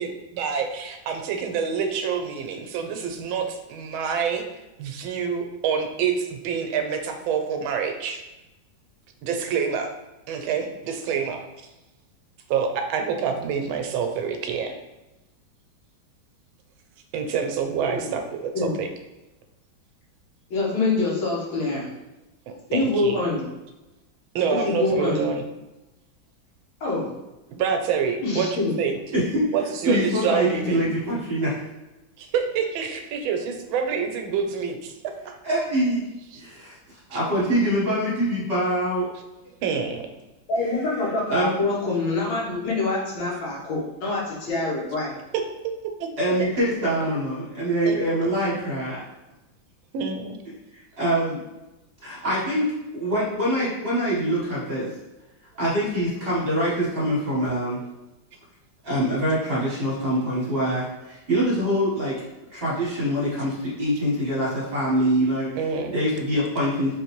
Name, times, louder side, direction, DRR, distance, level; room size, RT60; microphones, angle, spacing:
voice 1, 0.0-4.4 4.8-8.2 9.2-9.9 10.3-11.4 12.5-14.7 17.1-18.9 22.5-23.2 24.3-25.4 27.5-28.9 29.5-30.9 32.2-35.4 36.3-36.4 37.1-37.2 39.6-40.0 45.3-45.4 45.8-46.1 47.8-48.0 49.9-50.4 65.6-65.9, right 6 dB, 85° right, 5 dB, 1.4 m, -27 dB
voice 2, 20.5-21.9 22.7-23.5 24.5-25.3 26.8-27.1 28.2-28.8 40.5-45.1, left 3 dB, 80° left, -5 dB, 1.9 m, -25 dB
voice 3, 29.1-29.5 29.8-31.5 35.4-36.0 36.3-36.8 37.1-39.1 41.3-41.6 46.2-49.0 51.0-51.4 52.0-52.7 52.9-54.9 55.6-57.8 58.8-62.2 62.5-65.5 65.9-66.9, equal, 35° right, -7 dB, 1.1 m, -24 dB
4.1 x 3.1 x 3.0 m, 1.0 s
omnidirectional pair, 2.2 m